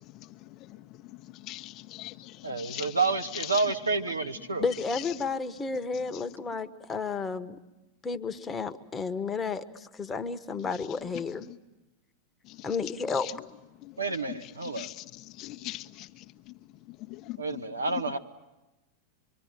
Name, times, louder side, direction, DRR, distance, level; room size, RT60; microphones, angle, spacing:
voice 1, 0.0-1.0 1.5-3.0 3.3-3.7 4.9-5.0 6.1-6.2 11.5-11.6 12.5-12.7 13.2-13.3 13.8-14.0 14.3-16.5 16.9-17.6 17.9-18.0, left 17 dB, 40° left, 1.0 m, -42 dB
voice 2, 2.4-4.6 14.0-14.9 17.4-18.2, right 3 dB, 80° right, 1.4 m, -29 dB
voice 3, 4.6-7.6 8.0-11.5 12.6-13.3, left 4 dB, 15° left, 1.3 m, -32 dB
25.5 x 24.5 x 9.0 m
figure-of-eight pair, 90°, 0 cm